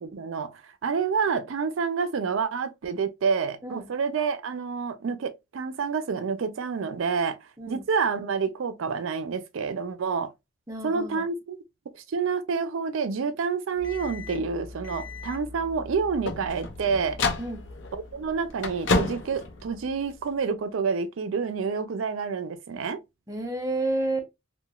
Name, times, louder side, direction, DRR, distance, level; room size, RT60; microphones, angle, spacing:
voice 1, 0.0-7.4 7.7-10.3 10.8-11.6 12.1-17.2 17.9-23.0, right 5 dB, 80° right, 0.4 m, -28 dB
voice 2, 10.7-11.3 17.4-17.6 23.3-24.3, right 2 dB, 15° right, 0.5 m, -30 dB
sound 1, 13.8-20.3, left 3 dB, 65° left, 0.6 m, -32 dB
2.9 x 2.2 x 2.2 m
head